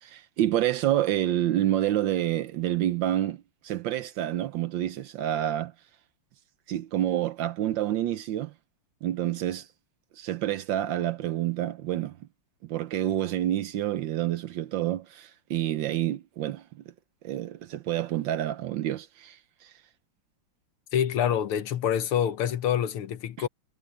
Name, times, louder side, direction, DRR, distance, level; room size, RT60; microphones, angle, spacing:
voice 1, 0.0-5.7 6.7-8.5 9.0-9.7 10.2-12.2 12.6-16.8 17.2-19.7 23.4-23.5, right 12 dB, 70° right, 1.2 m, -28 dB
voice 2, 20.9-23.5, left 9 dB, 80° left, 2.0 m, -26 dB
omnidirectional pair, 2.4 m